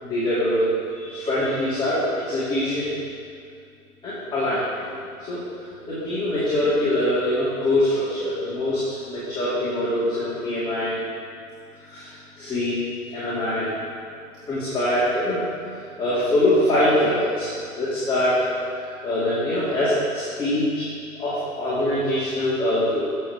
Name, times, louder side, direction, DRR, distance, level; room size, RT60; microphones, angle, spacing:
voice 1, 0.0-3.0 4.0-4.6 5.3-5.4 5.9-11.0 11.8-12.7 13.1-13.7 14.4-15.4 15.7-18.5 18.7-20.8 21.2-23.1, left 1 dB, 10° left, -12 dB, 2.7 m, -23 dB
13.0 x 7.8 x 3.6 m, 2.3 s
hypercardioid pair, 135°, 45 cm